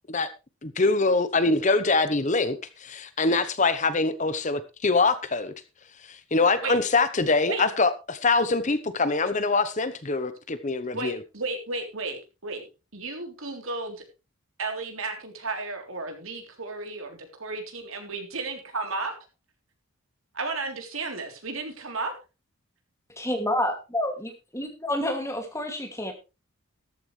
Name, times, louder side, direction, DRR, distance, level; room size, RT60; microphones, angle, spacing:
voice 1, 0.6-5.5 6.1-11.2, left 3 dB, 35° left, 12 dB, 0.9 m, -24 dB
voice 2, 10.9-12.6 12.9-14.0 14.6-19.1 20.3-22.1, right 3 dB, 70° right, 4 dB, 3.5 m, -33 dB
voice 3, 23.1-26.1, left 1 dB, 15° left, 4 dB, 2.5 m, -29 dB
13.5 x 13.0 x 3.3 m, 0.29 s
head